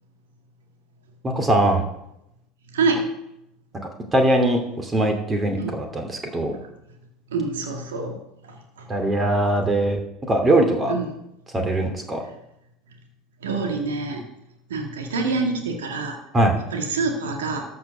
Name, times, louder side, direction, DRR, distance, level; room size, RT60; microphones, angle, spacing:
voice 1, 1.2-1.8 4.1-6.6 8.9-10.0 10.3-10.9 11.5-12.2 16.3-16.6, right 1 dB, 25° right, 4 dB, 2.5 m, -21 dB
voice 2, 2.7-3.1 5.6-5.7 7.3-8.2 10.9-11.0 13.4-14.2 14.7-16.2 16.7-17.6, right 4 dB, 75° right, 3 dB, 2.1 m, -25 dB
13.5 x 5.5 x 6.6 m, 0.83 s
hypercardioid pair, 75°, 0 cm